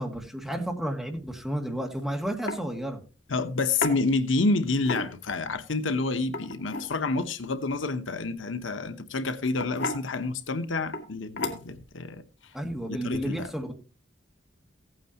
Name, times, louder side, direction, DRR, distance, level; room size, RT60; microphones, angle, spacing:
voice 1, 0.0-3.0 12.5-13.7, right 1 dB, ahead, 2.0 m, -32 dB
sound 1, 1.8-2.0 2.5-2.6 3.8-4.0 4.8-5.3 6.2-6.9 8.5-8.8 9.6-10.0 10.9-11.1 11.4-11.8, left 2 dB, 70° left, 1.8 m, -32 dB
voice 2, 3.3-12.2 12.9-13.5, left 3 dB, 85° left, 1.0 m, -28 dB
16.0 x 9.0 x 2.9 m
head